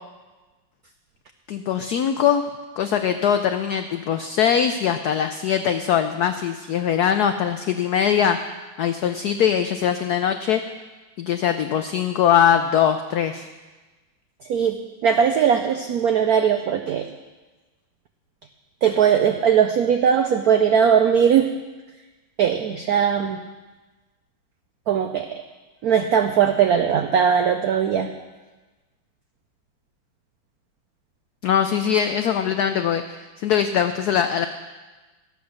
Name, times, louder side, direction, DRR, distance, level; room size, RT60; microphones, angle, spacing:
voice 1, 1.5-2.4 2.8-8.4 8.8-10.6 11.2-13.5 31.4-34.5, left 8 dB, 85° left, 8 dB, 0.8 m, -21 dB
voice 2, 14.5-17.1 18.8-21.5 22.4-23.4 24.9-25.4 25.8-28.1, right 8 dB, 90° right, 7 dB, 0.8 m, -19 dB
13.5 x 8.1 x 6.4 m, 1.2 s
omnidirectional pair, 2.3 m